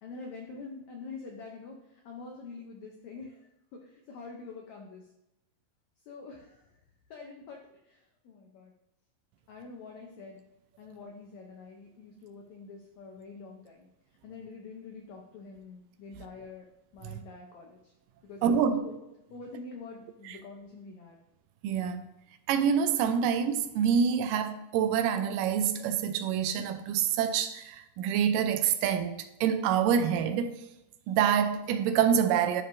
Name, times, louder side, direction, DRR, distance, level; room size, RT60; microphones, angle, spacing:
voice 1, 0.0-1.8 2.0-5.1 6.1-6.7 7.1-8.7 9.5-10.4 10.8-13.9 14.2-16.7 16.9-17.9 18.2-18.9 19.3-21.2, left 4 dB, 80° left, 1.6 m, -46 dB
voice 2, 18.4-18.8 20.3-20.4 21.6-22.1 22.5-29.1 29.4-30.6 31.1-32.6, right 8 dB, 80° right, 2.0 m, -26 dB
11.0 x 4.6 x 2.6 m
omnidirectional pair, 4.1 m